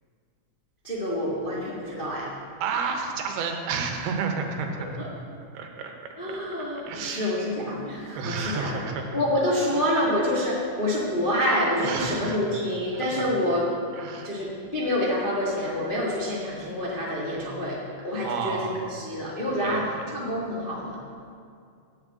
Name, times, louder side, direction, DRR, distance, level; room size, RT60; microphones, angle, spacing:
voice 1, 0.8-2.3 5.0-5.1 6.2-8.8 9.1-13.7 14.2-18.6 18.9-21.0, left 1 dB, 65° left, -6 dB, 0.5 m, -27 dB
voice 2, 2.6-4.9 5.5-5.9 6.8-7.4 8.2-9.2 11.8-12.5 13.1-13.3 14.0-14.3 18.2-18.7 19.6-20.0, right 5 dB, 85° right, 3 dB, 3.1 m, -31 dB
9.7 x 7.3 x 8.5 m, 2.3 s
omnidirectional pair, 4.4 m